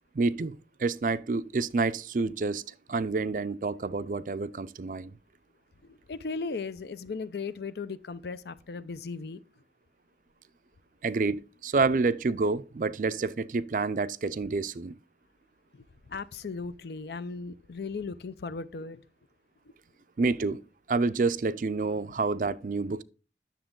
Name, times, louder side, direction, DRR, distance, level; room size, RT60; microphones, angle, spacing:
voice 1, 0.1-2.6 2.9-5.1 11.0-15.0 20.2-20.6 20.9-23.0, right 3 dB, 45° right, 0.4 m, -28 dB
voice 2, 5.9-9.4 15.7-19.0 22.0-22.1, left 4 dB, 70° left, 0.5 m, -37 dB
10.0 x 6.9 x 3.7 m
head